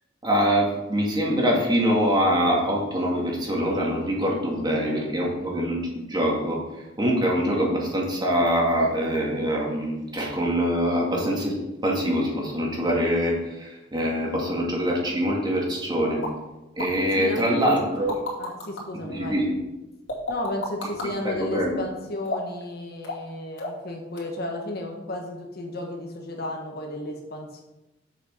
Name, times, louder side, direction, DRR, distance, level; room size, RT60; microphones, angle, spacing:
voice 1, 0.2-6.6 7.0-11.5 11.8-16.2 16.8-18.1 19.0-19.6 21.5-21.8, equal, 25° right, -3 dB, 2.5 m, -24 dB
voice 2, 4.6-5.6 17.1-18.1 18.4-19.4 20.3-27.6, left 1 dB, 55° left, 1 dB, 1.6 m, -34 dB
sound 1, 16.2-16.3 16.8-16.9 17.8-18.8 20.1-21.1 22.2-22.6 23.0-23.3 23.6-23.9 24.2-24.3, left 2 dB, 80° left, 2.8 m, -31 dB
7.8 x 6.6 x 5.8 m, 1.0 s
head